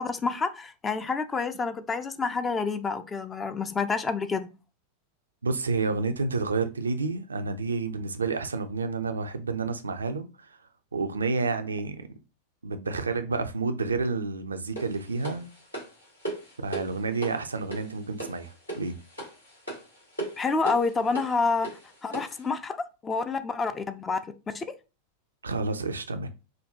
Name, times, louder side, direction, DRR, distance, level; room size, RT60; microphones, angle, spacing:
voice 1, 0.0-4.5 20.4-21.7 22.0-22.8 23.0-24.2 24.5-24.7, left 4 dB, 20° left, 0.4 m, -28 dB
voice 2, 5.4-10.6 10.9-12.1 12.6-15.5 16.6-19.0 25.4-26.3, right 4 dB, 75° right, 0.4 m, -30 dB
sound 1, 14.8-22.4, right 2 dB, 80° left, 2.1 m, -39 dB
5.0 x 2.2 x 2.7 m
figure-of-eight pair, 90°, 0 cm